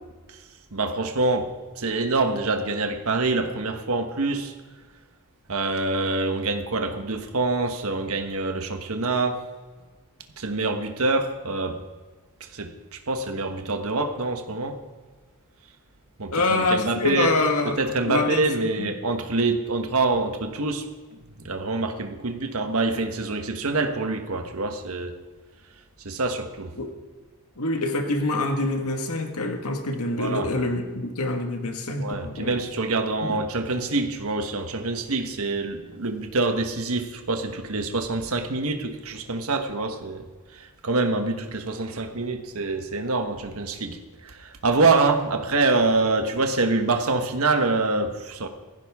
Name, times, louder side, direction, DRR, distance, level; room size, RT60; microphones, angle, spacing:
voice 1, 0.7-1.5 1.8-4.5 5.5-9.4 10.4-11.8 12.4-14.8 16.2-17.3 17.6-20.9 21.1-21.2 21.4-25.1 26.0-26.7 30.2-30.5 32.0-40.3 40.5-48.5, right 3 dB, 70° right, 6 dB, 1.3 m, -25 dB
voice 2, 16.3-17.8 18.0-18.9 26.8-26.9 27.6-32.5 33.2-33.4, left 2 dB, 80° left, 4 dB, 1.7 m, -25 dB
16.5 x 15.0 x 3.6 m, 1.4 s
head